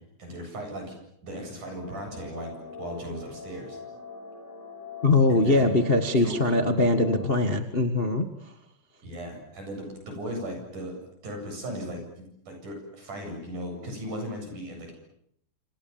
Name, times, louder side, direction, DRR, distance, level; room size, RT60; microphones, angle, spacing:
voice 1, 0.2-0.9 1.2-3.8 5.3-5.7 6.2-6.4 9.0-10.9 11.2-14.9, equal, 75° right, 3 dB, 9.6 m, -37 dB
sound 1, 1.8-7.4, left 4 dB, 5° right, 6.3 m, -42 dB
voice 2, 5.0-8.3, left 2 dB, 25° left, 7 dB, 1.2 m, -22 dB
28.0 x 27.0 x 7.3 m, 0.73 s
omnidirectional pair, 3.6 m